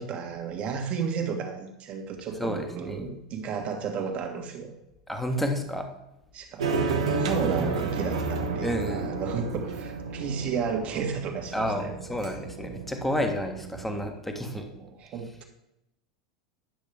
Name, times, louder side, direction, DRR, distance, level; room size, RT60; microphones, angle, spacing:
voice 1, 0.0-4.7 6.3-11.9 14.5-15.4, right 6 dB, 45° right, 3 dB, 1.7 m, -33 dB
voice 2, 2.4-3.1 5.1-5.9 7.4-7.8 8.6-9.2 11.5-14.7, equal, 5° left, 4 dB, 1.4 m, -30 dB
sound 1, 6.6-14.1, right 4 dB, 80° right, 1.2 m, -32 dB
10.5 x 6.3 x 3.5 m, 0.89 s
hypercardioid pair, 90°, 3 cm